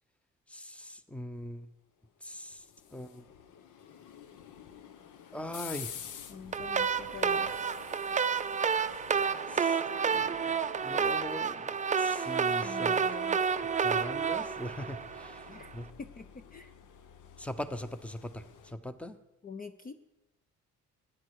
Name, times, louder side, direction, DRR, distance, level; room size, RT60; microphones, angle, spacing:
voice 1, 0.5-1.7 2.2-3.3 5.3-6.0 9.5-9.8 10.1-13.0 13.8-15.9 17.4-19.2, left 1 dB, 5° left, 12 dB, 0.8 m, -41 dB
sound 1, 2.1-18.7, left 8 dB, 85° left, 1.0 m, -50 dB
voice 2, 6.3-7.6 12.6-13.4 15.5-15.7 16.0-16.7 19.4-19.9, left 5 dB, 30° left, 10 dB, 0.6 m, -45 dB
sound 2, 6.5-15.6, right 6 dB, 25° right, 0.5 m, -30 dB
14.5 x 10.0 x 4.9 m, 0.98 s
cardioid pair, 90°, 30 cm